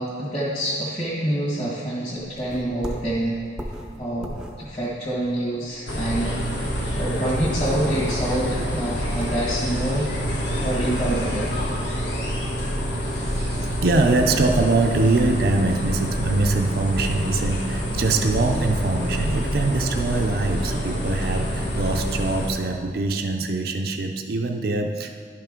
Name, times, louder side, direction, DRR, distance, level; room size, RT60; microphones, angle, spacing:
voice 1, 0.0-3.4 4.0-6.4 7.0-10.1 10.6-11.5 13.2-13.3, right 1 dB, 30° left, -9 dB, 1.7 m, -26 dB
sound 1, 2.2-5.9 6.2-6.3 6.6-6.7 7.0-9.6, equal, 5° right, 0.6 m, -36 dB
sound 2, 5.9-22.5, equal, 80° left, 1.4 m, -27 dB
voice 2, 13.3-25.1, right 3 dB, 55° right, 3 dB, 0.4 m, -23 dB
11.0 x 5.7 x 3.6 m, 2.1 s
head